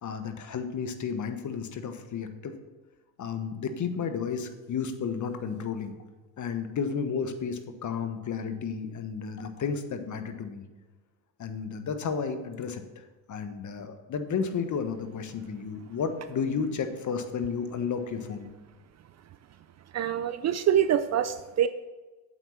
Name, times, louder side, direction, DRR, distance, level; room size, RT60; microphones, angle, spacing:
voice 1, 0.0-2.5 3.2-6.0 6.4-10.6 11.4-12.8 13.3-18.5, left 6 dB, 40° left, 8 dB, 1.3 m, -32 dB
voice 2, 19.9-21.7, right 10 dB, 35° right, 13 dB, 0.5 m, -25 dB
8.3 x 7.9 x 5.9 m, 1.2 s
supercardioid pair, 85°, 46 cm